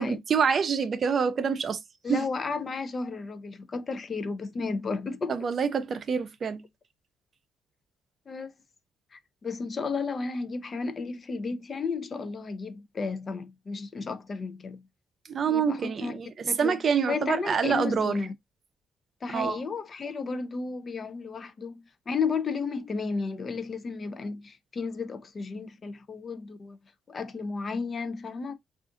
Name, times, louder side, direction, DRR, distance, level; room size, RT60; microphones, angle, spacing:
voice 1, 0.0-1.8 2.1-2.3 5.3-6.6 15.3-18.1 19.3-19.6, right 6 dB, 50° right, 0.5 m, -26 dB
voice 2, 2.0-5.4 8.3-8.5 9.1-14.8 15.4-16.2 16.5-16.8 17.1-18.3 19.2-26.8 27.1-28.5, left 4 dB, 40° left, 0.5 m, -33 dB
2.5 x 2.4 x 3.6 m
cardioid pair, 90°, 0 cm